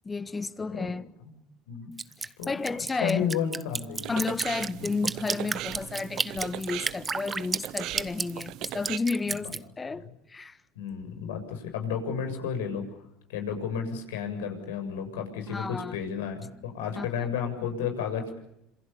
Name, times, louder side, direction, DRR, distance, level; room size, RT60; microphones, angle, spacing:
voice 1, 0.0-1.0 2.2-3.3 4.1-10.6 15.5-16.0 17.0-17.3, left 4 dB, 20° left, 1.5 m, -32 dB
Drip, 2.0-9.6, right 4 dB, 25° right, 1.1 m, -32 dB
voice 2, 3.0-4.1 4.8-4.9 9.3-9.4 9.9-10.0 10.8-12.9 13.3-18.4, left 7 dB, 85° left, 7.4 m, -32 dB
sound 1, 4.0-9.0, right 15 dB, 65° right, 1.0 m, -38 dB
27.5 x 27.0 x 7.1 m
supercardioid pair, 85°, 0 cm